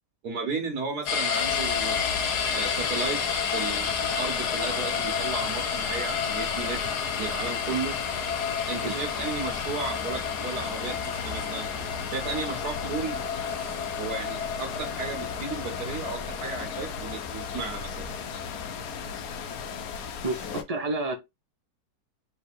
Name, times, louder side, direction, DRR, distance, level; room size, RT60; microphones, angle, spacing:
voice 1, 0.2-2.0 2.5-6.8 7.2-8.0 8.7-11.7 12.1-13.2 14.0-18.1, right 4 dB, 75° right, 1.7 m, -34 dB
sound 1, 1.1-20.1, left 6 dB, 85° left, 1.5 m, -31 dB
sound 2, 1.3-20.6, left 7 dB, 70° left, 1.1 m, -37 dB
voice 2, 20.2-21.1, right 2 dB, 35° right, 0.6 m, -29 dB
3.4 x 3.3 x 4.3 m
omnidirectional pair, 1.7 m